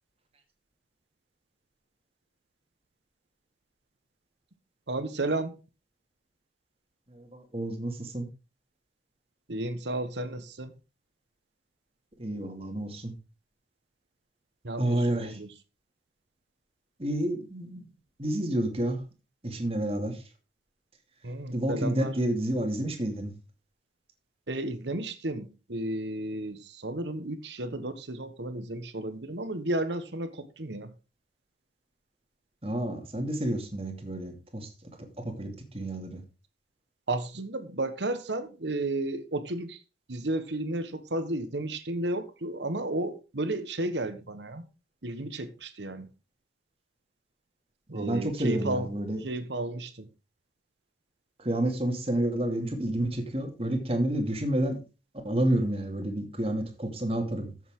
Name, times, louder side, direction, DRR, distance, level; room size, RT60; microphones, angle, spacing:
voice 1, 4.9-5.5 9.5-10.7 14.6-15.5 21.2-22.1 24.5-30.9 37.1-39.8 40.1-44.6 45.0-46.1 47.9-48.9 49.2-50.1, right 2 dB, 80° right, 1.3 m, -33 dB
voice 2, 7.1-8.3 12.2-13.1 14.8-15.4 17.0-17.9 18.2-19.0 19.4-20.1 21.5-23.3 32.6-34.7 35.2-36.2 47.9-49.2 51.4-54.8 55.2-57.5, right 1 dB, 35° right, 2.4 m, -29 dB
14.0 x 7.3 x 3.7 m
head